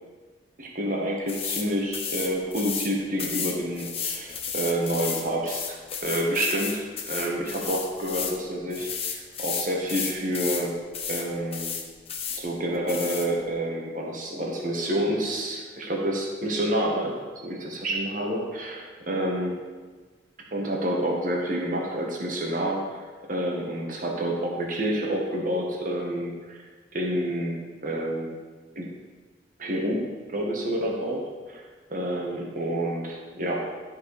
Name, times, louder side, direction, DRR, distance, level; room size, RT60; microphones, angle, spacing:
voice 1, 0.6-5.8 6.0-10.7 11.1-11.7 12.3-17.1 17.4-19.6 20.5-22.8 23.3-26.6 26.9-27.6 27.8-28.4 28.7-28.9 29.6-31.6 31.9-33.6, right 1 dB, 45° right, -1 dB, 1.5 m, -28 dB
sound 1, 1.3-1.7 1.9-2.9 3.2-8.4 8.7-10.7 10.9-11.2 11.5-12.4 12.9-13.3, left 6 dB, 35° left, 0.9 m, -32 dB
12.5 x 4.7 x 4.9 m, 1.4 s
head